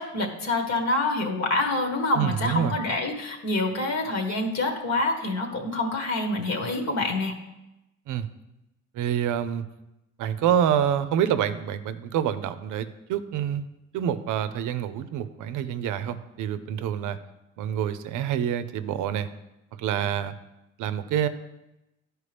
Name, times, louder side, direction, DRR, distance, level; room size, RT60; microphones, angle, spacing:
voice 1, 0.0-7.3, left 2 dB, 65° left, 3 dB, 1.3 m, -26 dB
voice 2, 2.2-2.7 8.1-8.3 8.9-9.6 10.2-13.6 13.9-17.2 17.6-19.3 19.8-20.3 20.8-21.3, right 9 dB, 85° right, 12 dB, 0.5 m, -27 dB
11.0 x 4.7 x 3.3 m, 0.95 s
cardioid pair, 90°, 30 cm